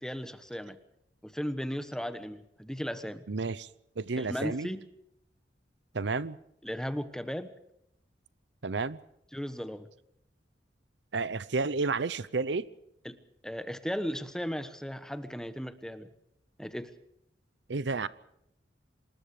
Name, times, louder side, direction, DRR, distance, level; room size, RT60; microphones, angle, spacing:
voice 1, 0.0-0.8 1.2-3.2 4.2-4.8 6.6-7.5 9.3-9.9 13.0-13.2 13.4-16.1 16.6-16.9, equal, 5° left, 1.2 m, -36 dB
voice 2, 3.3-3.7 4.0-4.7 5.9-6.4 8.6-9.0 11.1-12.7 17.7-18.1, right 4 dB, 70° right, 0.7 m, -31 dB
27.0 x 20.0 x 5.0 m
head